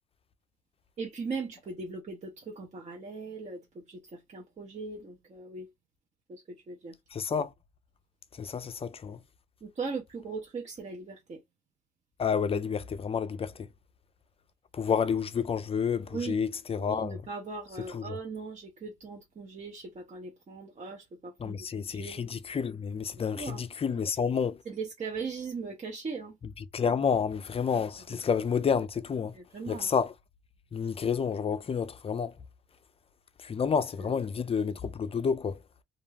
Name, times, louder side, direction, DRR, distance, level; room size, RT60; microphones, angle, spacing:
voice 1, 1.0-5.7 6.3-6.9 9.6-11.4 16.1-16.4 16.8-21.7 21.9-22.2 23.3-23.6 24.6-26.4 28.1-28.2 29.3-29.9 34.0-34.2, right 4 dB, 35° right, 0.7 m, -39 dB
voice 2, 7.1-7.5 8.4-9.2 12.2-13.5 14.7-17.2 17.9-18.0 21.4-24.6 26.7-29.3 29.7-30.1 30.7-32.3 33.4-35.6, left 6 dB, 30° left, 0.4 m, -29 dB
2.4 x 2.2 x 3.2 m
cardioid pair, 90°, 20 cm